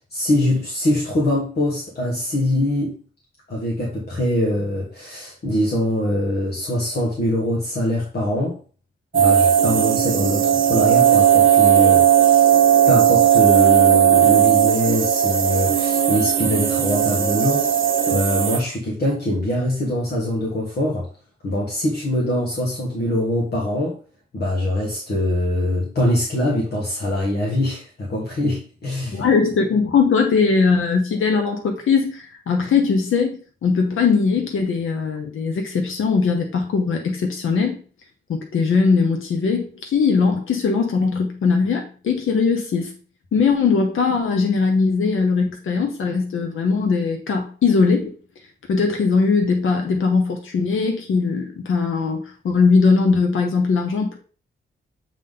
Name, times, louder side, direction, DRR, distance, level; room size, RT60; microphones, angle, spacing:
voice 1, 0.1-3.0 3.5-8.6 9.1-12.1 12.9-17.7 18.1-21.1 21.4-24.0 24.3-29.2, left 1 dB, 50° left, -3 dB, 1.5 m, -23 dB
sound 1, 9.1-18.6, right 10 dB, 75° right, 0.8 m, -16 dB
voice 2, 29.1-37.8 38.3-42.9 43.3-48.1 48.7-54.2, left 5 dB, 80° left, 3 dB, 1.0 m, -20 dB
7.2 x 3.7 x 3.7 m, 0.39 s
wide cardioid pair, 175°, 21 cm